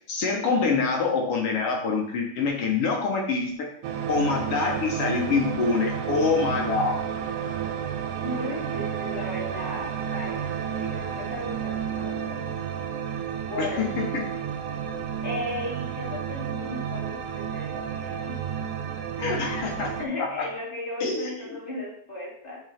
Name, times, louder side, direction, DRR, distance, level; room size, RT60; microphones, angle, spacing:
voice 1, 0.1-3.7 4.1-7.0 13.6-13.7 14.1-14.2 19.2-19.9 20.2-20.5 21.0-21.3, left 4 dB, 60° left, 0 dB, 1.8 m, -25 dB
sound 1, 3.8-20.1, right 8 dB, 85° right, 2.1 m, -31 dB
voice 2, 8.2-12.4 13.5-13.9 15.2-18.4 19.1-19.5 20.0-22.6, left 1 dB, 15° left, -7 dB, 2.6 m, -36 dB
6.2 x 3.9 x 5.7 m, 0.63 s
omnidirectional pair, 3.5 m